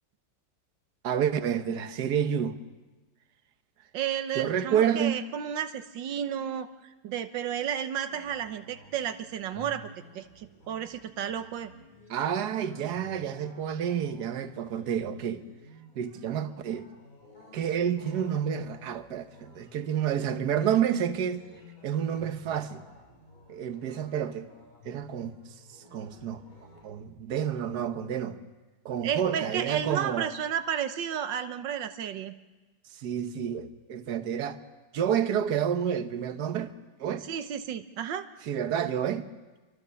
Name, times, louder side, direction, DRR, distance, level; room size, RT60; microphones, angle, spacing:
voice 1, 1.0-2.6 4.3-5.2 12.1-15.4 16.0-16.9 17.5-21.4 21.8-22.8 23.5-24.5 24.8-25.4 25.9-26.4 26.8-28.4 28.8-30.3 32.9-34.6 34.9-36.7 37.0-37.3 38.4-39.3, right 8 dB, 65° right, 1.7 m, -29 dB
voice 2, 3.9-9.9 10.2-11.7 29.0-32.3 37.3-38.3, right 9 dB, 90° right, 1.7 m, -32 dB
sound 1, 8.1-26.9, equal, 50° left, 7.5 m, -54 dB
28.5 x 24.5 x 7.0 m
omnidirectional pair, 1.9 m